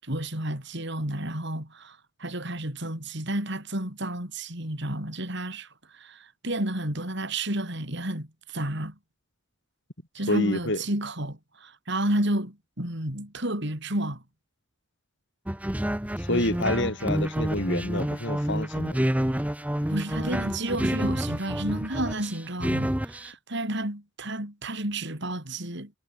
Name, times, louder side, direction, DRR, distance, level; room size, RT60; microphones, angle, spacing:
voice 1, 0.0-5.7 5.9-8.9 10.1-14.2 19.9-25.9, right 1 dB, 55° right, 6.7 m, -31 dB
voice 2, 10.3-10.8 16.2-19.0, left 1 dB, 60° left, 6.1 m, -28 dB
sound 1, 15.5-23.3, equal, 5° right, 1.0 m, -28 dB
head